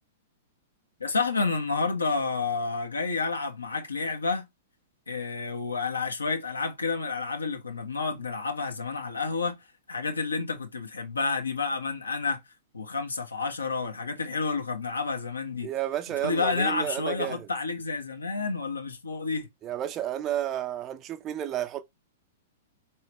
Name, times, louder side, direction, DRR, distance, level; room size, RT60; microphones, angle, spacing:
voice 1, 1.0-4.4 5.1-9.5 9.9-12.4 12.7-15.7 16.2-19.5, left 4 dB, 80° left, 1.1 m, -30 dB
voice 2, 15.6-17.5 19.6-21.8, right 11 dB, 30° right, 0.6 m, -31 dB
4.9 x 3.0 x 3.0 m
figure-of-eight pair, 105°, 0 cm